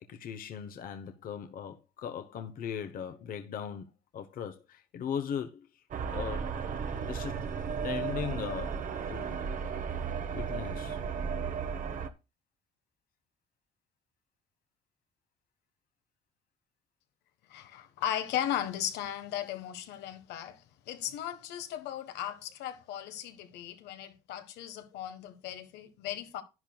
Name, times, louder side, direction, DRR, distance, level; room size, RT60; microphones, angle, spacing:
voice 1, 0.1-5.7 6.1-6.5 7.0-7.4 7.8-9.5 10.3-11.0, left 8 dB, 55° left, 1.0 m, -38 dB
sound 1, 5.9-12.1, right 6 dB, 50° right, 1.1 m, -34 dB
voice 2, 17.5-26.4, left 11 dB, 85° left, 1.4 m, -37 dB
11.0 x 10.5 x 2.3 m
cardioid pair, 110°, 17 cm